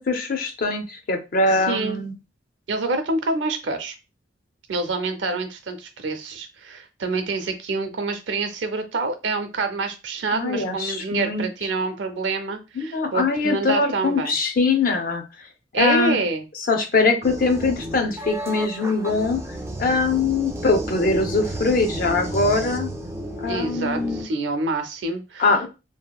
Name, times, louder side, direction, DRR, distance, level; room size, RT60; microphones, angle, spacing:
voice 1, 0.0-2.1 10.3-11.5 12.8-15.2 15.7-16.2 16.7-19.4 19.8-22.9 23.4-24.3 25.4-25.7, left 3 dB, 50° left, 6 dB, 0.5 m, -22 dB
voice 2, 1.5-2.0 2.7-4.0 4.7-14.3 15.7-16.4 23.5-25.5, right 3 dB, 80° right, 7 dB, 0.5 m, -27 dB
sound 1, 17.2-24.3, right 1 dB, 15° right, 0.4 m, -32 dB
2.7 x 2.5 x 2.3 m, 0.28 s
head